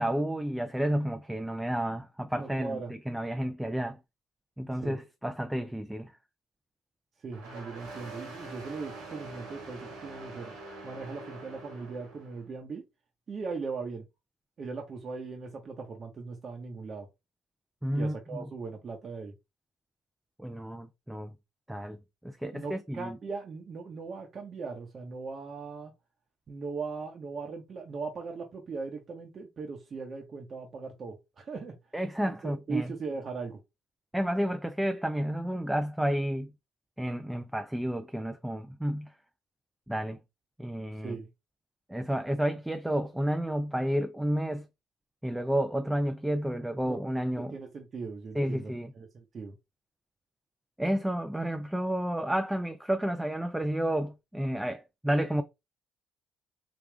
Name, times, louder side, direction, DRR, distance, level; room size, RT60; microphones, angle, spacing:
voice 1, 0.0-4.0 4.6-6.1 17.8-18.4 20.4-21.3 21.7-22.0 22.2-23.2 31.9-32.9 34.1-36.5 37.0-39.1 39.9-40.2 40.6-41.2 41.9-44.7 45.2-47.5 48.3-48.9 50.8-55.4, equal, 5° right, 0.4 m, -31 dB
voice 2, 2.3-2.9 4.8-5.0 7.2-10.6 10.8-12.8 13.3-14.0 14.6-17.1 17.9-19.3 22.5-25.9 26.5-31.7 32.2-33.6 41.0-41.3 46.8-47.0 47.3-49.5, right 4 dB, 45° right, 0.9 m, -39 dB
sound 1, 7.3-12.4, right 2 dB, 85° right, 1.7 m, -45 dB
3.4 x 2.3 x 3.3 m
supercardioid pair, 70°, 0 cm